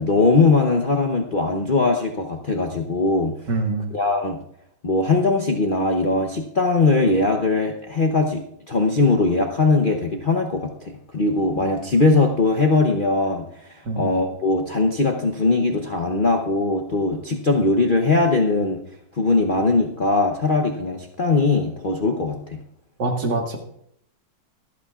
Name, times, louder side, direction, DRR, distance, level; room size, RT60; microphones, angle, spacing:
voice 1, 0.0-3.3 3.9-4.4 4.8-13.4 14.0-18.8 19.2-22.6, left 3 dB, 45° left, 2 dB, 0.7 m, -20 dB
voice 2, 3.5-3.9 13.9-14.1 23.0-23.6, right 3 dB, 70° right, 2 dB, 2.3 m, -24 dB
25.0 x 8.5 x 2.4 m, 0.71 s
omnidirectional pair, 2.0 m